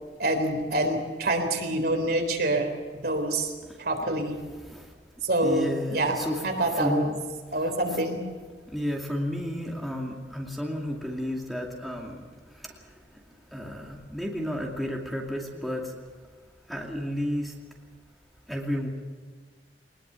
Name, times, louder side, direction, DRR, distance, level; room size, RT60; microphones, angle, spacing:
voice 1, 0.2-3.5 3.8-4.4 5.2-7.1 7.5-8.3, right 1 dB, 60° right, 4 dB, 3.9 m, -26 dB
voice 2, 5.4-6.4 6.8-7.1 8.7-12.1 13.5-15.9 16.7-17.5 18.5-18.9, equal, ahead, -1 dB, 2.4 m, -31 dB
22.0 x 20.5 x 7.0 m, 1.5 s
head